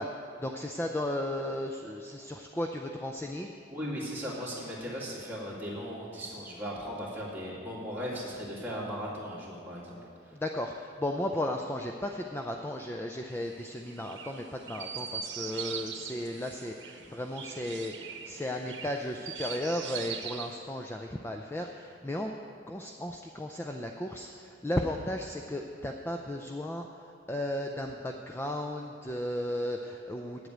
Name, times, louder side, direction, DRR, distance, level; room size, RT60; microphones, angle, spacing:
voice 1, 0.0-3.5 9.9-22.3 22.7-30.5, left 1 dB, 10° left, 3 dB, 0.4 m, -35 dB
voice 2, 3.7-10.0 10.2-10.3, equal, 10° right, -6 dB, 2.4 m, -37 dB
Chirp tweet, 13.3-20.6, right 7 dB, 65° right, 1.0 m, -41 dB
8.8 x 8.1 x 9.2 m, 2.6 s
head